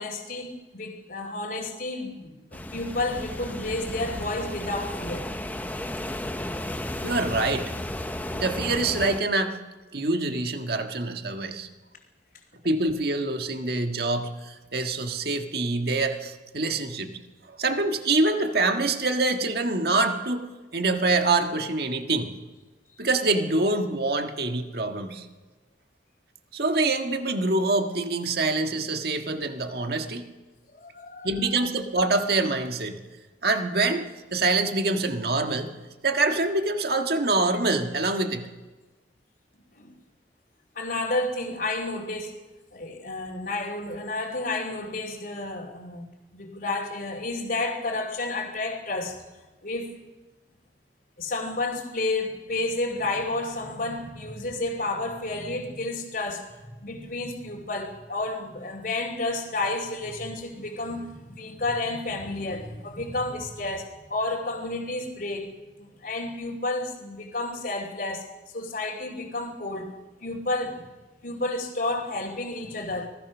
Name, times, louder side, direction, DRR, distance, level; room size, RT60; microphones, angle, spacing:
voice 1, 0.0-5.3 30.7-31.7 39.8-39.9 40.7-42.4 42.7-46.0 46.3-49.2 49.6-49.9 51.2-65.5 65.8-69.9 70.2-70.8 71.2-73.1, left 2 dB, 50° left, -4 dB, 2.7 m, -31 dB
sound 1, 2.5-9.2, left 1 dB, 10° left, 0.9 m, -34 dB
voice 2, 7.0-7.7 8.3-9.6 9.9-11.7 12.6-17.2 17.5-22.3 23.0-25.3 26.5-30.2 31.2-33.0 33.4-35.7 36.0-38.5, right 2 dB, 55° right, 5 dB, 1.7 m, -25 dB
25.5 x 18.5 x 6.2 m, 1.2 s
head